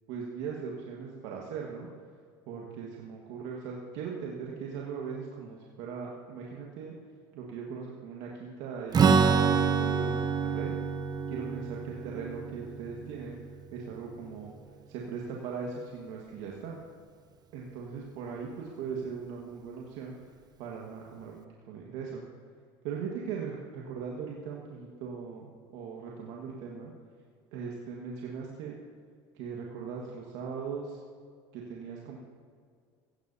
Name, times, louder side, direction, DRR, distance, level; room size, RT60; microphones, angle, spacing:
voice 1, 0.1-1.9 2.5-6.9 7.3-10.7 11.3-13.4 13.7-14.5 14.9-16.8 17.5-20.2 20.6-22.2 22.8-26.9 27.5-28.8 29.3-31.0 31.5-32.2, right 6 dB, 70° right, -2 dB, 1.7 m, -39 dB
Strum, 8.9-14.6, right 6 dB, 35° right, 1.0 m, -27 dB
17.0 x 15.5 x 2.8 m, 2.1 s
hypercardioid pair, 85°, 12 cm